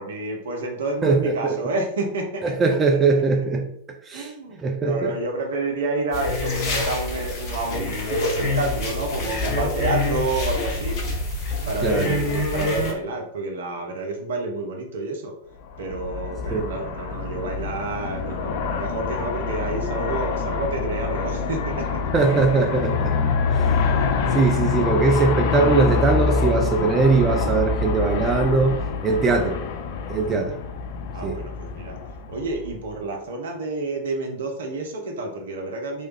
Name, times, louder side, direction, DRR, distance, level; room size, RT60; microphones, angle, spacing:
voice 1, 0.0-2.4 4.1-11.0 11.7-15.4 15.8-22.0 24.3-24.4 30.1-30.2 31.1-32.0 32.3-36.1, right 2 dB, 60° right, 2 dB, 0.7 m, -29 dB
voice 2, 1.0-1.6 2.4-3.7 4.1-4.3 4.6-5.2 11.8-12.2 16.5-16.7 22.1-23.1 24.3-29.6 30.1-30.6 31.2-31.4, right 4 dB, 20° right, 3 dB, 0.4 m, -21 dB
sound 1, 6.1-12.9, left 2 dB, 35° left, 0.9 m, -26 dB
Aircraft, 15.7-32.9, left 5 dB, 50° left, 0.4 m, -26 dB
3.0 x 2.3 x 3.2 m, 0.71 s
figure-of-eight pair, 90°, 0 cm